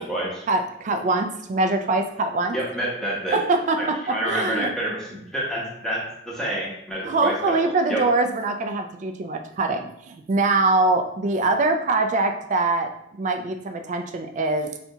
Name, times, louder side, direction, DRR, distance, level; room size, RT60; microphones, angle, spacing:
voice 1, 0.5-2.6 3.3-4.7 7.0-14.7, right 3 dB, 40° right, 5 dB, 0.3 m, -23 dB
voice 2, 2.5-3.4 4.0-8.0, right 1 dB, 5° left, -6 dB, 0.8 m, -28 dB
3.3 x 2.7 x 2.7 m, 0.75 s
head